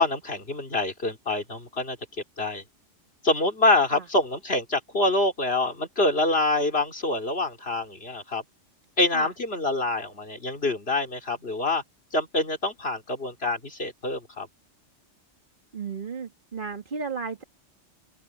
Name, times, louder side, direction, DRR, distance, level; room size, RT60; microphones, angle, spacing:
voice 1, 0.0-2.0 2.4-2.6 3.2-8.4 9.0-11.8 12.1-14.5, left 2 dB, 55° left, 3.4 m, -26 dB
voice 2, 15.7-17.4, right 5 dB, 45° right, 2.1 m, -34 dB
open air
omnidirectional pair, 1.2 m